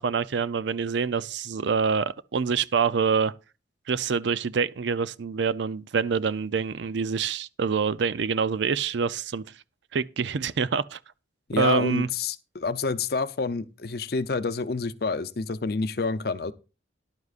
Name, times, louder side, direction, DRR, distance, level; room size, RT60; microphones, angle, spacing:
voice 1, 0.0-3.3 3.9-9.4 9.9-11.0 11.6-12.1, right 5 dB, 70° right, 0.5 m, -26 dB
voice 2, 11.5-16.5, left 4 dB, 55° left, 0.6 m, -28 dB
14.5 x 11.0 x 2.5 m
head